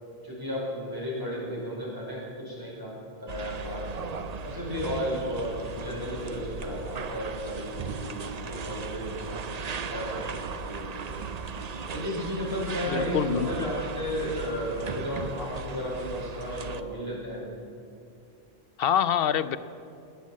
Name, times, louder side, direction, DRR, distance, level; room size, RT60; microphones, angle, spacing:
voice 1, 0.2-3.9 4.4-9.4 9.9-10.8 11.9-17.5, equal, 20° right, -5 dB, 5.2 m, -34 dB
sound 1, 3.3-16.8, right 4 dB, 45° right, 0.7 m, -37 dB
voice 2, 12.9-13.5 18.8-19.6, left 8 dB, 65° left, 14 dB, 0.8 m, -25 dB
19.0 x 9.5 x 7.4 m, 2.6 s
omnidirectional pair, 1.1 m